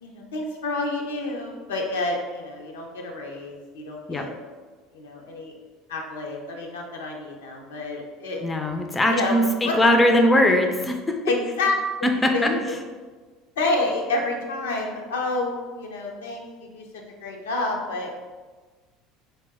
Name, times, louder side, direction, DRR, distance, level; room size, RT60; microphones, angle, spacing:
voice 1, 0.0-4.3 4.9-5.5 5.9-8.4 9.1-9.4 9.6-9.8 11.2-11.8 12.3-12.7 13.6-16.8 17.2-18.1, left 2 dB, 90° left, 0 dB, 0.5 m, -29 dB
voice 2, 8.4-11.2 12.0-12.5, left 1 dB, 15° left, 3 dB, 0.4 m, -20 dB
2.9 x 2.1 x 3.4 m, 1.4 s
hypercardioid pair, 90°, 0 cm